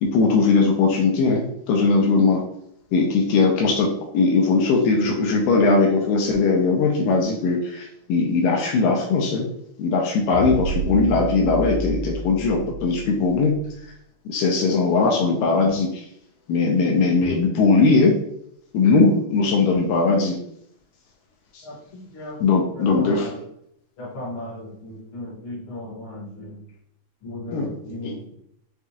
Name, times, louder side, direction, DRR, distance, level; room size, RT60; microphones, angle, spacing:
voice 1, 0.0-2.4 2.9-9.5 9.8-13.6 14.3-16.0 16.5-18.2 18.7-20.4 22.4-23.3 27.5-27.7 28.0-28.1, left 4 dB, 85° left, 0 dB, 2.2 m, -19 dB
sound 1, 10.3-13.7, right 4 dB, 75° right, 2.2 m, -30 dB
voice 2, 21.6-23.4 24.0-26.6 27.2-28.3, left 1 dB, 55° left, -5 dB, 1.7 m, -36 dB
5.9 x 2.4 x 2.8 m, 0.71 s
omnidirectional pair, 3.9 m